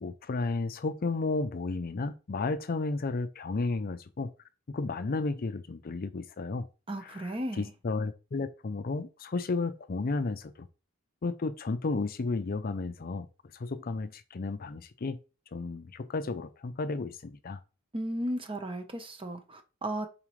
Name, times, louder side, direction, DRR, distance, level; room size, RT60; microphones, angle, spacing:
voice 1, 0.0-4.3 4.7-6.7 7.0-10.7 11.2-13.3 13.5-15.2 15.5-17.6, left 3 dB, 45° left, 0.5 m, -33 dB
voice 2, 6.9-7.7 17.9-20.1, right 1 dB, 25° right, 1.0 m, -35 dB
7.4 x 4.3 x 3.2 m
head